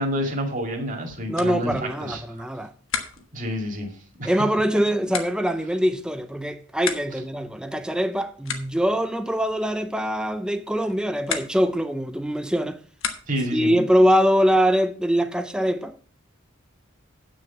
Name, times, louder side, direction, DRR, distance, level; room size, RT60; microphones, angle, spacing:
voice 1, 0.0-2.5 3.3-4.4 13.3-13.8, equal, 40° right, 2.3 m, -29 dB
sound 1, 1.3-13.6, left 7 dB, 80° left, 1.4 m, -38 dB
voice 2, 1.3-2.7 4.2-12.8 13.5-16.0, equal, 5° right, 0.6 m, -23 dB
8.9 x 6.4 x 5.9 m
head